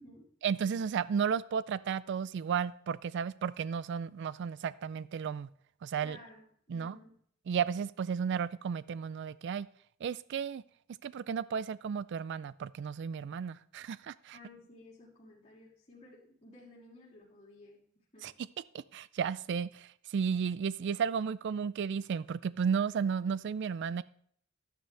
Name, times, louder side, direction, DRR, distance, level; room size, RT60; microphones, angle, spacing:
voice 1, 0.4-5.5 5.8-6.2 6.7-7.0 7.5-9.7 10.0-10.6 11.0-14.4 18.2-18.3 18.9-24.0, right 7 dB, 60° right, 17 dB, 0.3 m, -33 dB
voice 2, 6.0-7.2 14.3-18.3, left 2 dB, 30° left, -10 dB, 3.2 m, -55 dB
12.0 x 9.9 x 3.3 m, 0.63 s
head